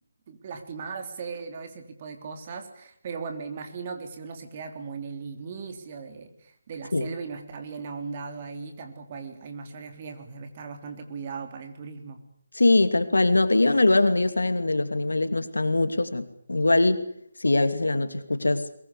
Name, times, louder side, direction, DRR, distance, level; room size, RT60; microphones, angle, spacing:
voice 1, 0.3-12.2, right 5 dB, 35° right, 6 dB, 3.6 m, -38 dB
voice 2, 12.6-17.1 17.4-18.7, left 2 dB, 80° left, 10 dB, 2.7 m, -22 dB
22.5 x 21.5 x 8.3 m, 0.66 s
figure-of-eight pair, 155°, 0 cm